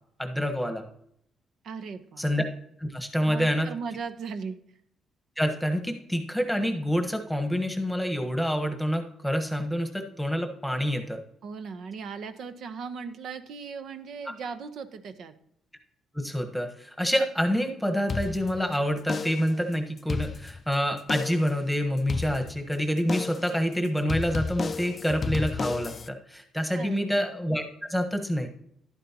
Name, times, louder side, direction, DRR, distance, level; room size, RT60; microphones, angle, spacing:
voice 1, 0.2-0.9 2.2-2.4 2.8-3.7 5.4-11.2 16.1-28.5, equal, ahead, 5 dB, 1.3 m, -27 dB
voice 2, 1.6-2.3 3.2-4.6 11.4-15.3 26.7-27.1, right 5 dB, 70° right, 10 dB, 0.8 m, -37 dB
sound 1, 18.1-18.7 19.1-19.6 20.0-20.7 21.1-21.6 22.1-22.7 23.1-23.6 24.1-26.1, left 4 dB, 40° left, 0.4 m, -32 dB
11.5 x 9.1 x 2.9 m, 0.72 s
cardioid pair, 90°, 0 cm